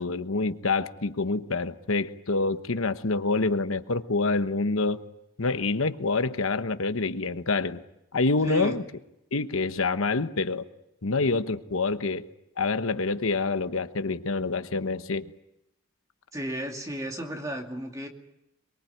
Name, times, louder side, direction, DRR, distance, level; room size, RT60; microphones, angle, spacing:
voice 1, 0.0-5.0 5.4-7.8 8.1-8.8 9.3-10.6 11.0-12.2 12.6-15.3, left 3 dB, 80° left, 1.1 m, -27 dB
voice 2, 8.4-8.8 16.3-18.1, equal, 15° right, 2.5 m, -33 dB
23.5 x 22.5 x 9.3 m
head